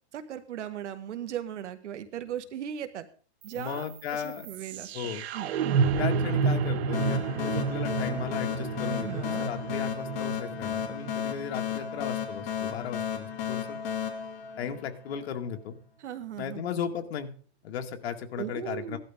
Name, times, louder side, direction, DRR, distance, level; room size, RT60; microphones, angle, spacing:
voice 1, 0.1-3.1 3.4-5.5 9.0-9.5 16.0-16.6 18.4-19.0, right 10 dB, 85° right, 9 dB, 1.9 m, -38 dB
sound 1, 3.4-13.5, right 5 dB, 60° right, 1.2 m, -31 dB
voice 2, 3.5-4.5 4.9-5.2 6.0-13.8 14.6-15.7 16.4-17.3 17.6-19.0, left 8 dB, 60° left, 5 dB, 2.1 m, -36 dB
sound 2, 6.9-15.3, left 9 dB, 35° left, 2.4 m, -34 dB
16.5 x 12.0 x 3.7 m, 0.41 s
supercardioid pair, 160°, 35 cm